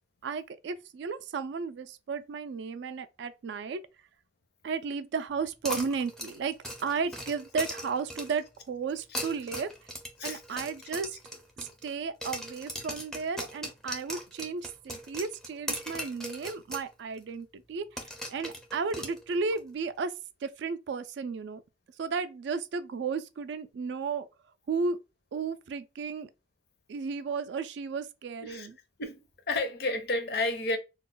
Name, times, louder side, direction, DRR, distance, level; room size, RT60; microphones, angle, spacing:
voice 1, 0.2-3.8 4.6-9.7 10.2-11.2 11.8-18.0 18.3-20.1 20.4-21.6 22.0-24.3 24.7-25.0 25.3-26.3 26.9-28.8, right 5 dB, 65° right, 0.3 m, -34 dB
sound 1, 5.6-8.5 9.0-11.9 12.2-16.9 17.2-17.3 18.0-19.6, equal, ahead, 0.4 m, -39 dB
voice 2, 29.0-30.8, left 2 dB, 55° left, 0.6 m, -31 dB
2.3 x 2.1 x 3.7 m
head